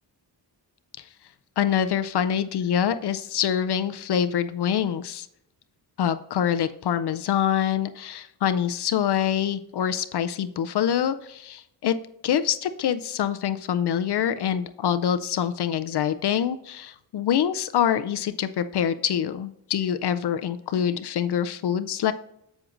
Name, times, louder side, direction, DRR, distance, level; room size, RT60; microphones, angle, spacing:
voice 1, 1.6-5.3 6.0-12.0 12.2-22.1, left 9 dB, 65° left, 10 dB, 0.5 m, -25 dB
7.7 x 7.4 x 2.5 m, 0.78 s
wide cardioid pair, 120°, 43 cm